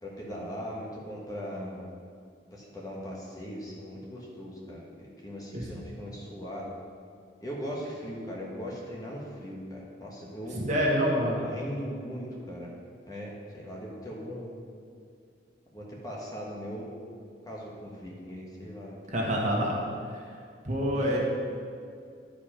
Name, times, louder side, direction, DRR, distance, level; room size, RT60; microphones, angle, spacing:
voice 1, 0.0-1.9 2.5-4.8 5.2-6.7 7.4-10.6 11.5-12.7 13.0-14.5 15.7-17.0 17.4-19.0 20.9-21.2, equal, 20° left, -4 dB, 1.4 m, -39 dB
voice 2, 10.5-11.5 19.1-19.8 20.1-20.2 20.6-21.2, equal, 40° right, -4 dB, 1.6 m, -27 dB
11.0 x 5.0 x 5.1 m, 2.3 s
head